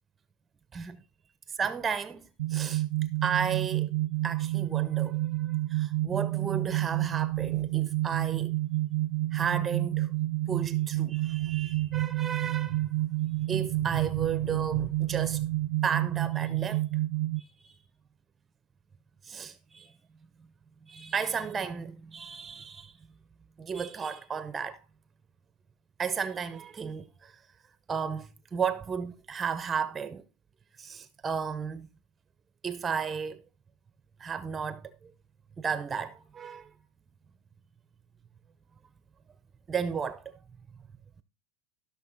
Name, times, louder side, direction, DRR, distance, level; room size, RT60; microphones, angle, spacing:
voice 1, 1.6-2.2 2.5-2.8 3.2-3.9 4.2-8.5 9.3-10.1 10.5-12.9 13.4-15.5 15.8-16.8 17.4-17.7 19.2-19.9 20.9-22.9 23.6-24.8 26.0-27.4 27.9-30.2 30.8-31.9 32.6-33.4 34.2-35.1 35.6-36.7 39.7-40.3, right 6 dB, 20° right, 0.6 m, -34 dB
sound 1, 2.4-17.4, right 17 dB, 80° right, 0.5 m, -29 dB
14.0 x 6.3 x 4.0 m
supercardioid pair, 135°, 0 cm